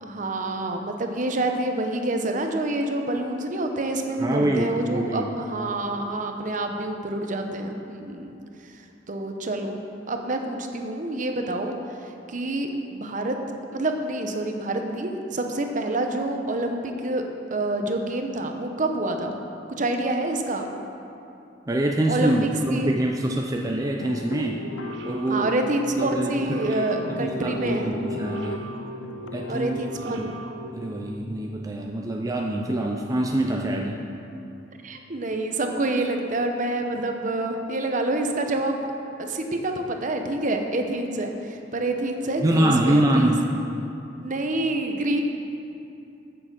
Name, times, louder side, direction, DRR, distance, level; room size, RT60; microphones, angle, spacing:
voice 1, 0.0-8.4 9.1-9.8 10.1-11.7 12.3-13.4 13.7-17.2 17.5-19.4 19.7-20.7 22.1-22.9 25.3-27.9 29.5-30.3 34.8-38.8 39.2-43.3 44.2-45.2, right 2 dB, 45° right, 4 dB, 0.9 m, -27 dB
voice 2, 4.2-5.3 21.7-24.6 25.0-25.6 26.0-26.8 27.1-28.6 29.3-29.8 30.2-30.4 30.7-34.1 42.4-43.5, right 1 dB, 20° right, 1 dB, 0.5 m, -25 dB
sound 1, 24.0-29.7, left 3 dB, 80° left, 0.5 m, -36 dB
sound 2, 24.5-31.4, right 1 dB, 75° right, 1.0 m, -40 dB
9.0 x 6.9 x 7.3 m, 2.8 s
head